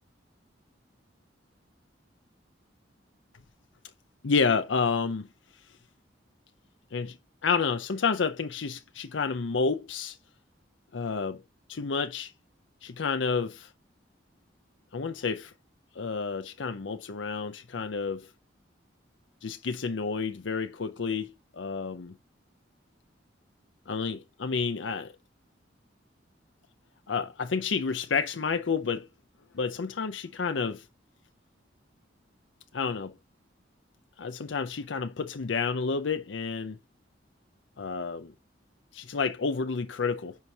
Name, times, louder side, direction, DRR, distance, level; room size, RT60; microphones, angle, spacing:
voice 1, 4.2-5.3 6.9-7.2 7.4-10.2 10.9-11.4 11.7-12.3 12.8-13.7 14.9-15.5 15.9-18.3 19.4-22.1 23.9-25.1 27.1-29.1 29.5-30.8 32.7-33.1 34.2-36.8 37.8-38.3 38.9-40.4, left 5 dB, 85° left, 0.6 m, -30 dB
10.0 x 4.6 x 2.8 m
head